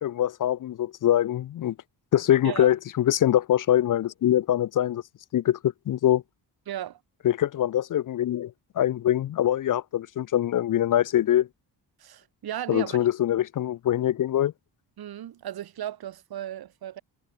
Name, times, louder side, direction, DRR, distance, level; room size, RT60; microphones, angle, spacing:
voice 1, 0.0-1.7 2.1-5.0 5.3-6.2 7.2-11.5 12.7-14.5, left 11 dB, 50° left, 0.5 m, -23 dB
voice 2, 6.7-7.0 12.0-13.1 15.0-17.0, right 11 dB, 60° right, 1.1 m, -35 dB
wide cardioid pair, 160°, 42 cm